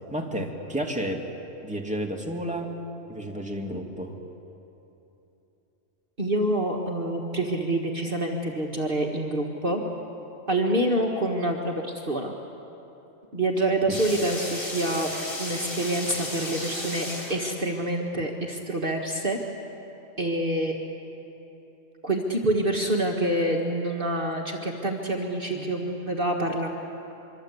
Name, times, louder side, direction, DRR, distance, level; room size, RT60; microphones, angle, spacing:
voice 1, 0.1-1.2 1.6-2.7 3.1-4.2 13.9-14.0 25.5-25.8, right 1 dB, 5° right, 0 dB, 2.5 m, -31 dB
voice 2, 6.2-9.8 10.5-12.3 13.3-15.1 15.4-19.4 20.2-20.9 22.0-26.7, right 1 dB, 45° right, 0 dB, 1.9 m, -27 dB
sound 1, 13.9-17.8, left 1 dB, 90° left, 5.3 m, -34 dB
25.0 x 24.5 x 8.3 m, 3.0 s
omnidirectional pair, 1.4 m